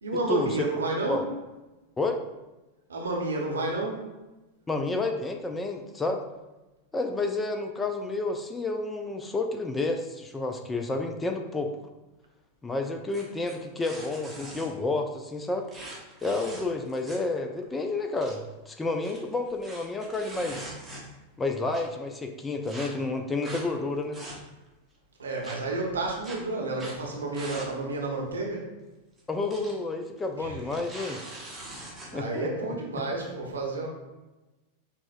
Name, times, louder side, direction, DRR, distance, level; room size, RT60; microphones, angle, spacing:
voice 1, 0.0-1.2 2.9-4.0 25.2-28.7 30.4-30.6 31.9-33.9, right 2 dB, 70° right, -1 dB, 0.7 m, -30 dB
voice 2, 4.7-6.2 6.9-11.7 12.6-15.7 16.2-20.8 21.4-24.2 29.3-31.2 32.1-32.5, left 3 dB, 15° left, 5 dB, 0.3 m, -30 dB
sound 1, 13.1-14.7 15.7-17.3 17.6-17.7 18.0-18.3 18.9-21.3 21.7-21.8 22.6-22.9 23.4-23.6 24.0-24.7 25.4-25.6 26.2-26.4 26.7-27.0 27.3-27.7 28.0-28.1 29.2-29.7 30.0-30.2 30.6-32.1, right 1 dB, 5° right, 0.8 m, -42 dB
5.9 x 2.1 x 2.5 m, 1.1 s
figure-of-eight pair, 90°, 0 cm